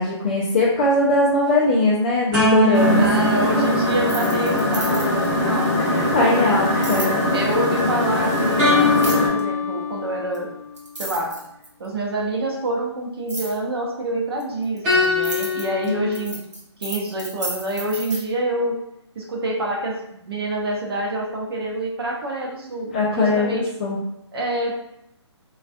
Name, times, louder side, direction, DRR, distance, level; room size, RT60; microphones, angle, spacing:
voice 1, 0.0-3.1 6.1-7.2 15.8-16.1 22.9-24.0, left 2 dB, 20° left, -6 dB, 0.3 m, -20 dB
sound 1, 2.3-4.9 8.6-10.4 14.8-16.2, left 1 dB, 15° right, 0.6 m, -22 dB
sound 2, 2.7-9.3, left 1 dB, 35° left, 0.8 m, -22 dB
voice 2, 3.0-6.5 7.3-10.5 11.0-11.3 11.8-16.4 16.8-18.8 19.2-20.0 20.3-23.7 24.3-24.7, right 1 dB, 55° right, -1 dB, 0.7 m, -27 dB
sound 3, 4.0-5.3 6.8-7.1 8.9-9.4 10.3-10.4 10.8-11.9 13.3-13.6 14.4-18.2, right 2 dB, 80° right, 1.0 m, -32 dB
2.4 x 2.3 x 2.5 m, 0.79 s
hypercardioid pair, 155°, 15 cm